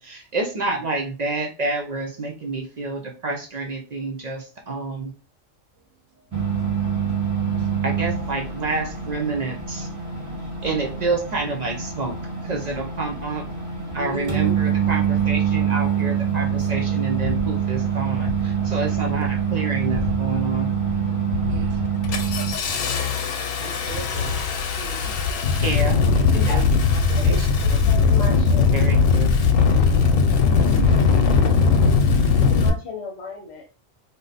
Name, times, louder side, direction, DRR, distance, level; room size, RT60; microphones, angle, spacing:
voice 1, 0.0-5.1 7.8-9.9 10.6-12.1 12.4-13.4 13.9-20.7 25.6-26.0 26.3-26.6 28.7-29.3, right 3 dB, 50° right, 0.5 m, -28 dB
sound 1, 6.3-22.5, right 7 dB, 15° right, 0.7 m, -25 dB
voice 2, 13.9-15.2 18.9-19.3 21.5-21.9 22.7-22.9 23.6-25.1 26.3-26.6 26.9-28.1 29.5-29.9 30.3-31.3, right 3 dB, 75° right, 1.0 m, -38 dB
Engine starting, 16.4-16.5 17.2-17.5 18.2-18.5 18.9-19.4 19.8-20.4 20.8-21.0 21.3-32.7, left 5 dB, 90° left, 1.0 m, -20 dB
voice 3, 26.3-26.7 27.1-28.7 32.1-33.8, left 4 dB, 65° left, 0.9 m, -35 dB
2.7 x 2.1 x 3.9 m
omnidirectional pair, 1.3 m